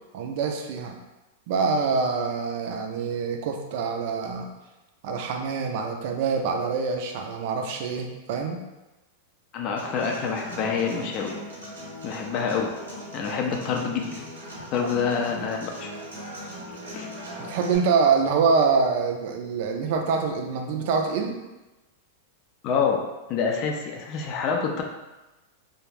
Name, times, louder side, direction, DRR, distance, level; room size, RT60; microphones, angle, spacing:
voice 1, 0.1-1.0 1.5-4.5 5.0-8.6 17.4-21.4, right 5 dB, 60° right, 4 dB, 0.4 m, -25 dB
voice 2, 9.5-11.3 12.0-12.7 13.1-14.2 14.7-15.9 16.9-17.1 22.6-23.0 23.3-24.8, left 6 dB, 45° left, 2 dB, 0.4 m, -27 dB
Human voice / Acoustic guitar, 9.8-17.8, equal, 80° right, 0.8 m, -39 dB
2.3 x 2.0 x 3.2 m, 1.1 s
hypercardioid pair, 110°, 0 cm